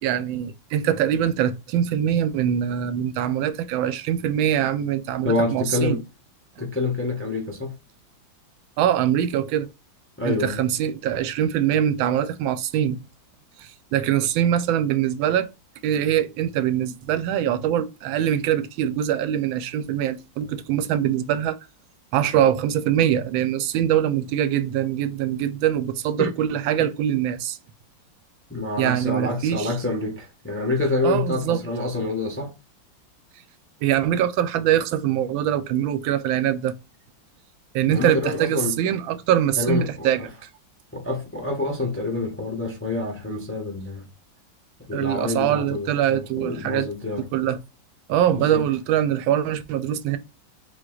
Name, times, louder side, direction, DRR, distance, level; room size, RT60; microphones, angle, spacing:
voice 1, 0.0-6.0 8.8-9.7 10.2-13.0 13.6-15.5 15.8-21.6 22.1-27.6 28.8-29.7 31.0-31.6 33.8-36.7 37.7-40.3 44.9-46.9 47.2-47.6 48.1-50.2, right 10 dB, 85° right, 1.4 m, -23 dB
voice 2, 5.2-6.0 6.6-7.8 10.2-10.6 26.2-26.3 26.8-26.9 28.5-32.5 37.9-38.8 39.6-40.3 40.9-44.1 44.9-47.3 48.3-48.6, left 2 dB, 15° left, 0.4 m, -27 dB
7.5 x 2.9 x 2.3 m
omnidirectional pair, 2.1 m